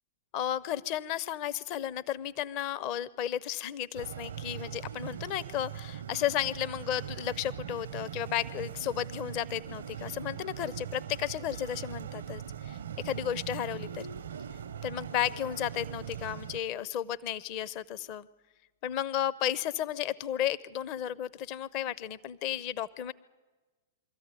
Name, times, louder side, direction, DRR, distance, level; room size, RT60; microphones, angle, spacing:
voice 1, 0.3-12.8 13.0-14.0 14.8-18.3 18.8-23.1, left 11 dB, 45° left, 17 dB, 0.7 m, -33 dB
sound 1, 3.9-16.6, right 9 dB, 75° right, 0.6 m, -41 dB
23.5 x 14.0 x 9.7 m, 1.3 s
hypercardioid pair, 110°, 0 cm